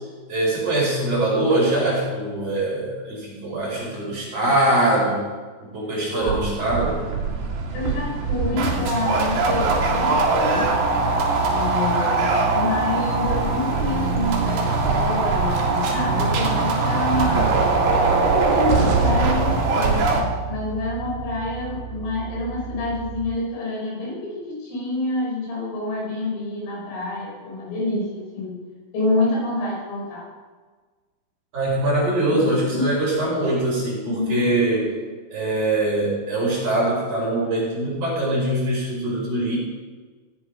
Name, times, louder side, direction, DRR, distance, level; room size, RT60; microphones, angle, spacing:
voice 1, 0.3-5.2 5.6-7.0 31.5-34.9 35.3-39.6, right 1 dB, 30° right, -6 dB, 6.0 m, -22 dB
voice 2, 6.1-6.4 7.7-10.7 11.5-17.7 18.1-20.1 20.5-28.7 28.9-30.3 32.2-33.1 34.2-34.4, left 2 dB, 90° left, -3 dB, 7.4 m, -27 dB
sound 1, 6.2-20.2, right 3 dB, 55° right, 3.7 m, -21 dB
sound 2, 13.8-22.0, right 6 dB, 55° left, 1.8 m, -36 dB
Bass guitar, 17.1-23.4, right 12 dB, 80° right, 2.7 m, -32 dB
17.0 x 9.8 x 5.0 m, 1.4 s
omnidirectional pair, 5.8 m